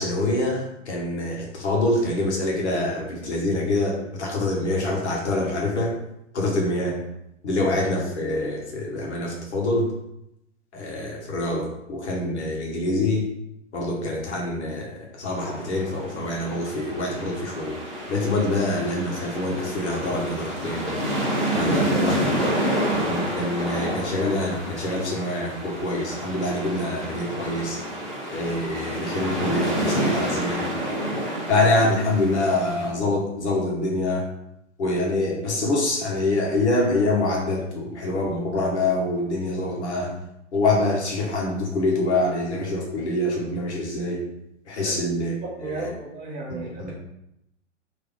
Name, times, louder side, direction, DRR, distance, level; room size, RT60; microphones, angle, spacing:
voice 1, 0.0-6.0 6.3-7.0 7.4-9.9 10.7-13.2 13.7-17.8 18.1-20.9 21.5-22.2 23.1-27.8 28.3-30.6 31.5-34.2 34.8-40.1 40.5-44.2 44.7-45.3 45.6-45.9 46.5-46.9, left 2 dB, 60° left, -2 dB, 1.5 m, -25 dB
sound 1, 15.4-32.9, equal, ahead, 1.3 m, -29 dB
voice 2, 21.6-22.5 44.8-44.9 45.6-46.9, right 3 dB, 20° right, -3 dB, 1.2 m, -34 dB
3.4 x 3.2 x 3.7 m, 0.82 s
figure-of-eight pair, 110°, 38 cm